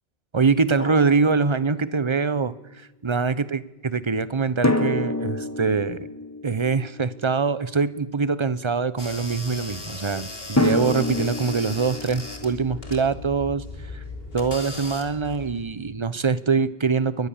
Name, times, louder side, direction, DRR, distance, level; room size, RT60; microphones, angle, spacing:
voice 1, 0.3-2.5 3.0-6.1 6.4-13.6 13.9-14.0 14.3-17.3, right 5 dB, 30° right, 16 dB, 0.9 m, -23 dB
Drum, 0.8-2.2 4.6-7.6 10.6-13.4, left 2 dB, 15° left, 1.4 m, -28 dB
sound 1, 9.0-15.7, left 2 dB, 70° left, 3.3 m, -38 dB
23.0 x 19.0 x 7.3 m, 1.1 s
omnidirectional pair, 1.0 m